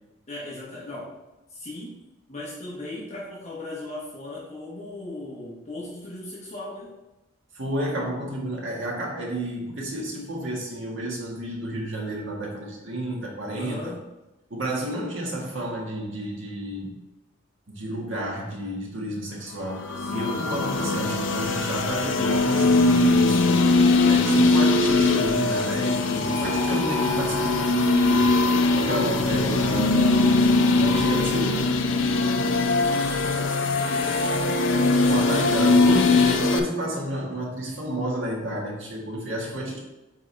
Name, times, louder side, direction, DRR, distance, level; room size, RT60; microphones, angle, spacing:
voice 1, 0.3-1.2 1.5-2.0 2.3-6.9 13.5-14.0 20.0-20.4 33.0-36.3, left 2 dB, 35° left, -6 dB, 1.2 m, -37 dB
voice 2, 7.5-13.9 14.5-17.0 17.7-23.5 23.9-28.4 28.7-31.7 35.1-39.8, right 1 dB, 65° right, -3 dB, 1.7 m, -31 dB
sound 1, 19.7-36.6, left 3 dB, 60° left, 0.6 m, -21 dB
7.8 x 3.9 x 3.4 m, 1.0 s
head